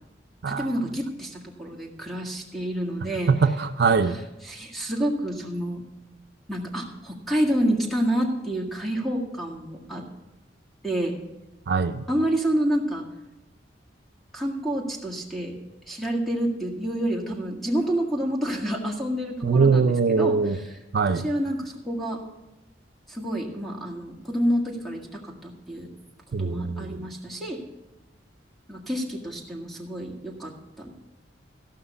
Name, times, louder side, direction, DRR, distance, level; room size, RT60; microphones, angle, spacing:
voice 1, 0.5-3.3 4.5-5.8 6.5-10.0 10.8-11.1 12.1-13.0 14.3-15.5 15.9-20.4 21.1-22.2 23.1-25.9 26.4-27.6 28.7-30.9, right 1 dB, ahead, 0 dB, 1.8 m, -28 dB
voice 2, 3.3-4.1 11.7-12.0 19.4-20.6 20.9-21.3 26.3-27.1, right 5 dB, 65° right, 8 dB, 0.5 m, -22 dB
15.0 x 5.8 x 6.9 m, 0.98 s
head